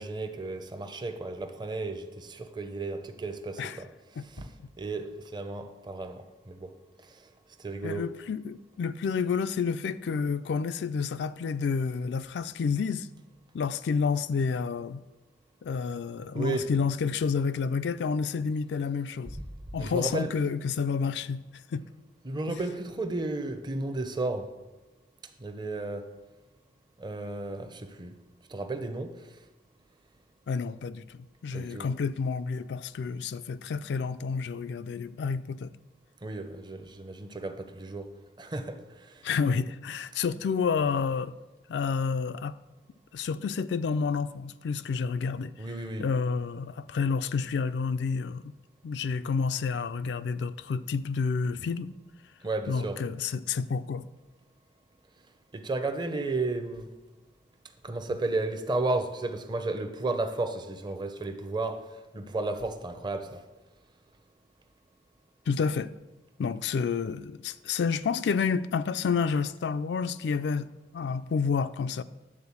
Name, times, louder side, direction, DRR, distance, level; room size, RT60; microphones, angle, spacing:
voice 1, 0.0-3.9 4.2-4.5 4.8-6.7 7.0-7.3 7.6-8.1 16.3-16.7 19.7-20.3 22.2-24.5 25.4-26.1 27.0-28.2 28.5-29.4 31.5-31.9 36.2-38.1 38.4-39.3 45.6-46.1 52.4-53.0 55.5-56.9 57.8-61.9 62.1-63.4, right 2 dB, 25° right, 0.6 m, -33 dB
voice 2, 7.8-13.1 13.5-15.0 15.6-19.4 19.7-21.4 21.7-21.8 30.5-35.7 39.2-41.3 41.7-42.6 43.1-45.5 46.0-48.4 48.8-51.9 52.7-54.0 65.5-65.9 66.4-70.7 70.9-72.0, left 5 dB, 75° left, 0.3 m, -29 dB
9.8 x 4.0 x 7.1 m
head